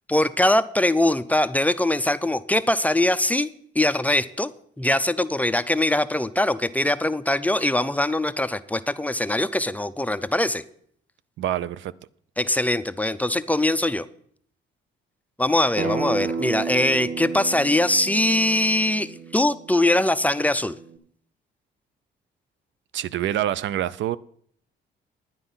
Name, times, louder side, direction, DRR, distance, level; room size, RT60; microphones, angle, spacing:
voice 1, 0.1-3.5 3.7-4.5 4.8-10.6 12.4-14.1 15.4-20.8, left 1 dB, 5° left, 0.5 m, -22 dB
voice 2, 11.4-11.9 22.9-24.2, right 12 dB, 70° right, 0.5 m, -26 dB
Acoustic guitar, 15.8-21.0, right 5 dB, 40° right, 1.5 m, -32 dB
9.9 x 9.8 x 5.5 m
cardioid pair, 90°, 20 cm